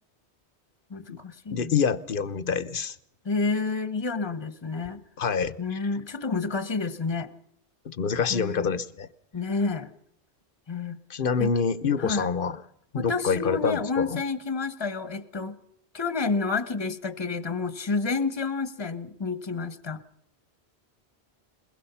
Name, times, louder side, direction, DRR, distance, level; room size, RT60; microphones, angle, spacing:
voice 1, 0.9-1.7 3.2-5.0 5.6-7.3 8.3-8.7 9.3-9.9 10.7-11.0 11.4-11.5 12.0-12.3 12.9-15.6 15.9-20.0, left 4 dB, 25° left, 1.2 m, -29 dB
voice 2, 1.5-3.0 5.2-5.9 7.8-9.1 11.1-12.6 12.9-14.2, left 6 dB, 55° left, 1.1 m, -26 dB
22.0 x 21.0 x 5.7 m
omnidirectional pair, 1.1 m